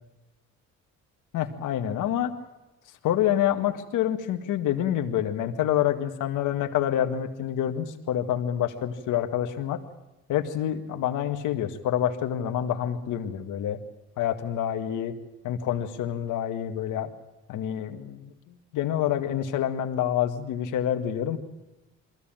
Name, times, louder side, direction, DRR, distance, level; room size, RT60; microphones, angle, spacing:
voice 1, 1.3-2.3 3.0-9.8 10.3-13.8 14.2-15.1 15.4-17.1 17.5-21.4, left 10 dB, 85° left, 7 dB, 1.9 m, -27 dB
22.5 x 15.5 x 9.0 m, 1.0 s
cardioid pair, 90°, 30 cm